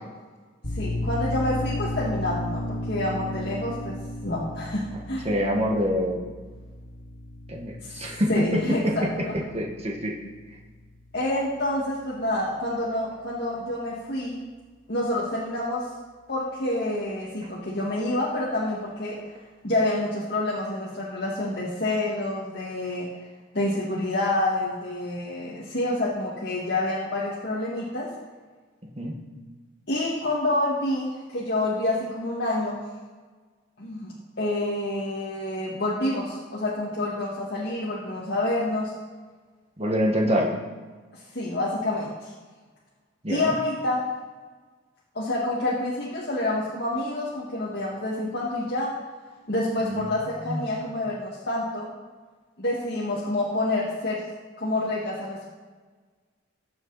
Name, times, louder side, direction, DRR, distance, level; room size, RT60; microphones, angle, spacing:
sound 1, 0.6-11.9, left 1 dB, 75° left, 2.9 m, -35 dB
voice 1, 0.7-4.0 4.2-5.3 7.8-9.4 11.1-14.4 14.9-15.8 16.3-19.2 19.6-23.1 23.5-28.1 29.9-32.8 33.8-34.1 34.4-38.9 41.1-42.3 43.3-44.0 45.1-48.9 49.5-51.9 52.6-54.2 54.6-55.4, left 1 dB, 55° left, -6 dB, 2.0 m, -28 dB
voice 2, 5.2-6.2 7.5-8.4 9.5-10.1 29.0-29.1 39.8-40.5 43.2-43.5 49.8-50.1 50.5-50.7, equal, 30° right, 0 dB, 1.6 m, -25 dB
20.5 x 6.9 x 4.1 m, 1.4 s
head